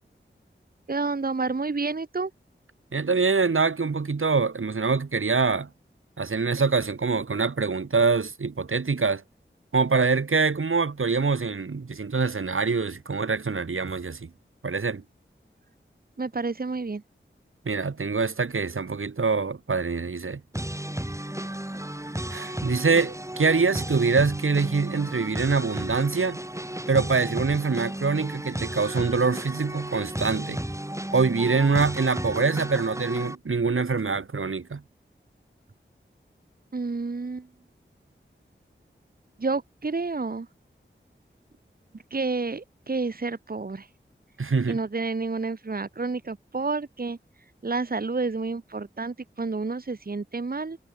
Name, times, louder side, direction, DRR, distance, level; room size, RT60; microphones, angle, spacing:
voice 1, 0.9-2.3 16.2-17.0 36.7-37.5 39.4-40.5 42.1-43.9 44.7-47.2 47.6-50.8, right 3 dB, 45° right, 1.2 m, -29 dB
voice 2, 2.9-5.7 6.2-9.2 9.7-14.3 14.6-15.0 17.6-20.4 22.3-26.4 26.9-30.6 31.1-34.8 44.4-44.8, right 4 dB, 85° right, 2.7 m, -24 dB
sound 1, 20.5-33.3, right 1 dB, 15° right, 6.0 m, -34 dB
wide cardioid pair, 55°, 21 cm